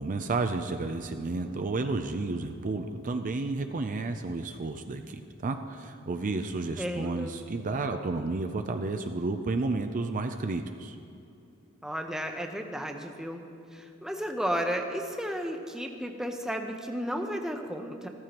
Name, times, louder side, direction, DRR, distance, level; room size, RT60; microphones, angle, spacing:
voice 1, 0.0-11.0, right 3 dB, 40° right, 7 dB, 0.5 m, -31 dB
voice 2, 6.8-7.4 11.8-13.4 13.7-18.1, equal, 5° right, 4 dB, 0.7 m, -33 dB
14.5 x 14.0 x 3.0 m, 2.7 s
head